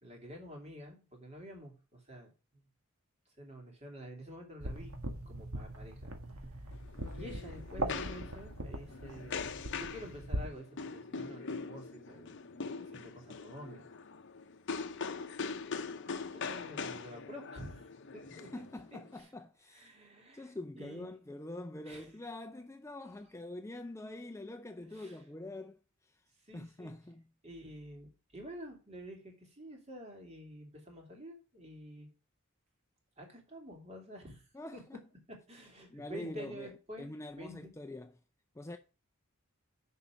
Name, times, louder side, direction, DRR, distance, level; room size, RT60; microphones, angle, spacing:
voice 1, 0.0-2.7 3.4-4.9 5.3-6.7 7.1-12.4 12.8-13.8 16.0-18.5 19.1-19.3 19.7-21.1 21.8-22.1 24.9-25.2 26.4-26.9 27.4-32.1 33.2-34.8 35.5-37.7, equal, 30° right, 2.7 m, -49 dB
sound 1, 4.6-10.5, right 1 dB, 85° right, 1.7 m, -41 dB
sound 2, 6.7-19.2, left 5 dB, 55° left, 0.7 m, -42 dB
voice 2, 18.3-19.9 20.3-25.8 26.5-27.2 34.5-35.0 35.9-36.7 37.0-38.1 38.6-38.8, left 2 dB, 15° left, 0.5 m, -45 dB
6.7 x 5.6 x 7.1 m
head